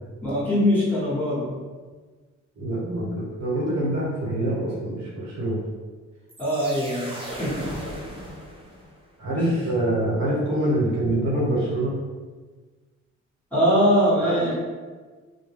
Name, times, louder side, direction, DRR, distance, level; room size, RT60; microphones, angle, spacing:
voice 1, 0.2-1.6 6.4-7.7 9.4-9.7 10.1-10.2 13.5-14.5, equal, 5° left, -9 dB, 1.2 m, -22 dB
voice 2, 2.6-5.6 9.2-11.9 14.2-14.5, right 1 dB, 65° right, -5 dB, 1.1 m, -25 dB
sound 1, 6.3-9.1, equal, 20° right, 0.7 m, -37 dB
2.3 x 2.1 x 3.4 m, 1.4 s
cardioid pair, 90°, 30 cm